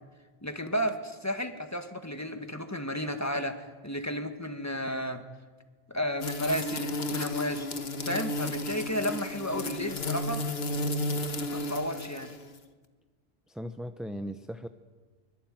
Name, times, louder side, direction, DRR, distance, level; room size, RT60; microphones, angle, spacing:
voice 1, 0.4-5.2 5.9-7.7 8.1-10.4 11.5-12.3, equal, 15° left, 7 dB, 1.9 m, -33 dB
sound 1, 6.2-12.6, left 1 dB, 70° left, 1.6 m, -33 dB
voice 2, 13.5-14.7, equal, ahead, 9 dB, 0.7 m, -38 dB
23.5 x 22.5 x 9.3 m, 1.4 s
omnidirectional pair, 1.1 m